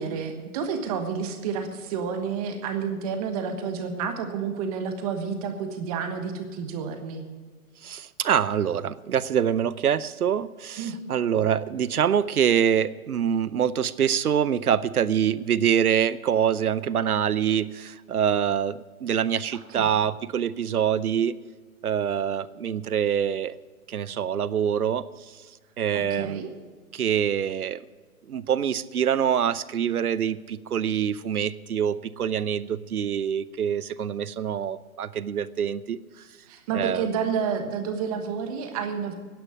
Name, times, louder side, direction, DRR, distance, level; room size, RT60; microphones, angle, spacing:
voice 1, 0.0-7.3 10.8-11.0 19.5-19.9 25.9-26.5 36.5-39.1, right 6 dB, 25° right, 7 dB, 1.3 m, -30 dB
voice 2, 7.8-21.3 21.8-23.5 23.9-25.0 25.8-26.4 26.9-27.8 28.3-36.0 36.7-37.1, right 8 dB, 75° right, 18 dB, 0.7 m, -25 dB
12.0 x 10.5 x 7.2 m, 1.4 s
hypercardioid pair, 140°, 44 cm